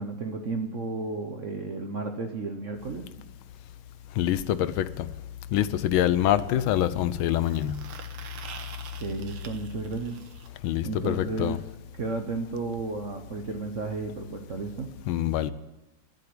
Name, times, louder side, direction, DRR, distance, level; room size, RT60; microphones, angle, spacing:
voice 1, 0.0-3.3 9.0-10.2 10.8-11.6 12.0-14.9, right 3 dB, 50° right, 1.0 m, -33 dB
voice 2, 4.1-5.2 5.5-7.8 10.6-11.6 15.1-15.5, left 12 dB, 80° left, 1.4 m, -25 dB
sound 1, 6.6-10.5 12.4-12.5 12.8-12.9 13.1-13.3 14.2-14.3, right 7 dB, 70° right, 1.7 m, -46 dB
11.5 x 9.4 x 9.5 m
omnidirectional pair, 2.3 m